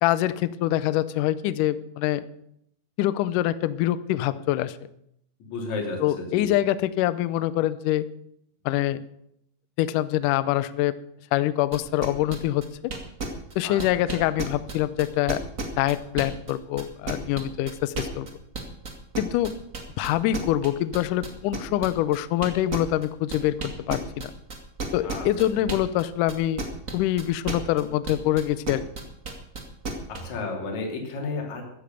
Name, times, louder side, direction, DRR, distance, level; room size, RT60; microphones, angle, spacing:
voice 1, 0.0-2.2 3.0-4.8 6.0-8.1 8.7-9.0 9.8-10.9 11.3-12.9 13.6-15.4 15.8-18.3 19.2-19.5 20.0-23.6 23.9-24.3 24.9-26.6 26.9-28.8, left 14 dB, 90° left, 15 dB, 1.8 m, -25 dB
voice 2, 5.5-6.0 6.3-6.5 13.6-13.8 14.1-14.2 25.0-25.3 30.1-31.6, left 3 dB, 50° left, 1 dB, 3.9 m, -32 dB
sound 1, 11.7-16.5 16.8-26.0 26.3-30.2, right 3 dB, 40° right, 1.2 m, -33 dB
14.5 x 10.5 x 6.9 m, 0.74 s
omnidirectional pair, 4.6 m